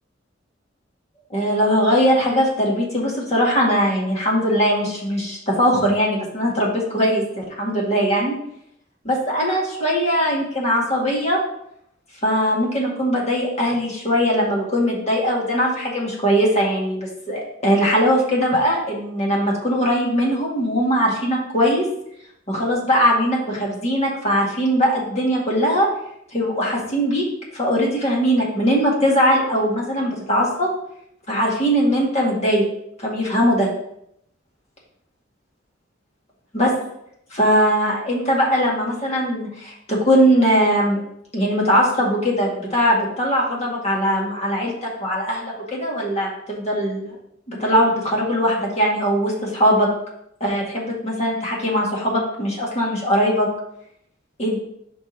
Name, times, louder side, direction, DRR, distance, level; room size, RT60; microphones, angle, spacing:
voice 1, 1.3-8.3 9.1-11.4 12.2-21.9 22.5-25.9 26.3-27.2 27.5-30.7 31.3-32.7 33.0-33.7 36.5-36.7 37.3-41.0 41.3-47.2 47.5-49.9 50.4-53.5 54.4-54.6, equal, 35° left, -3 dB, 2.0 m, -20 dB
5.3 x 4.7 x 5.3 m, 0.75 s
head